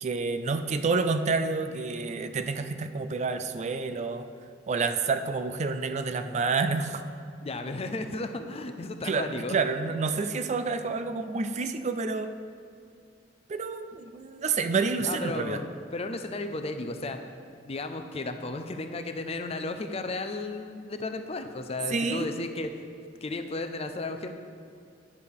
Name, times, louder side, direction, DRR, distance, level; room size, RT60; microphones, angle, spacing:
voice 1, 0.0-4.3 4.7-7.0 9.0-12.3 13.5-15.6 21.9-22.3, right 4 dB, 40° right, 9 dB, 0.4 m, -29 dB
voice 2, 7.4-9.6 10.9-11.0 14.0-14.1 15.0-17.4 17.6-22.9 23.2-24.3, left 2 dB, 35° left, 7 dB, 0.6 m, -34 dB
9.7 x 6.6 x 5.4 m, 2.4 s
head